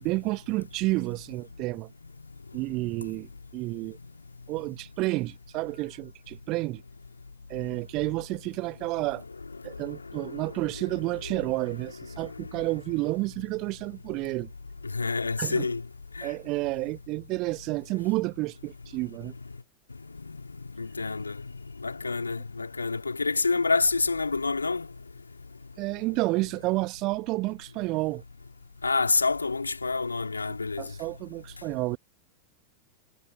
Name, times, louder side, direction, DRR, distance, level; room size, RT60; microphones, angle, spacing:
voice 1, 0.0-1.9 2.5-4.0 4.5-6.8 7.5-9.2 9.6-14.5 15.4-15.7 16.2-19.3 25.8-28.2 30.8-32.0, right 21 dB, 40° right, 1.0 m, -30 dB
voice 2, 9.8-10.5 14.8-15.8 16.2-16.3 20.3-20.4 20.8-21.4 21.8-24.9 28.8-30.9, left 4 dB, 80° left, 2.5 m, -28 dB
figure-of-eight pair, 90°, 0 cm